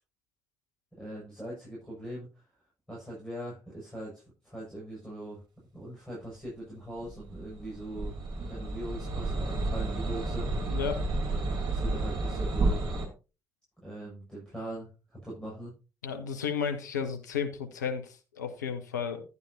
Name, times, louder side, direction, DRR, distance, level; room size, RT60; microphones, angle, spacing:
voice 1, 1.0-2.4 2.9-5.4 5.7-10.5 11.7-12.9 13.8-15.7, right 1 dB, 10° left, -5 dB, 6.7 m, -41 dB
sound 1, 7.0-13.1, right 2 dB, 45° right, 2.7 m, -31 dB
voice 2, 10.7-11.0 16.0-19.2, left 7 dB, 80° left, 7 dB, 1.0 m, -33 dB
11.0 x 9.6 x 2.8 m, 0.32 s
figure-of-eight pair, 45°, 9 cm